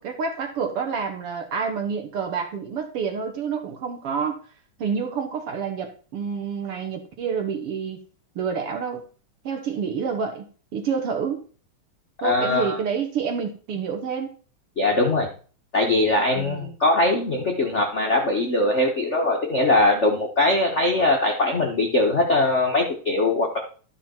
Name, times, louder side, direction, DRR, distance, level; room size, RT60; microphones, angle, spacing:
voice 1, 0.0-4.4 4.8-8.0 8.4-9.1 9.4-11.4 12.2-14.3 16.3-16.8, right 6 dB, 60° right, 5 dB, 1.9 m, -28 dB
voice 2, 12.2-12.8 14.8-15.3 15.7-23.6, left 2 dB, 45° left, 1 dB, 0.8 m, -21 dB
12.0 x 5.9 x 4.4 m, 0.39 s
omnidirectional pair, 3.4 m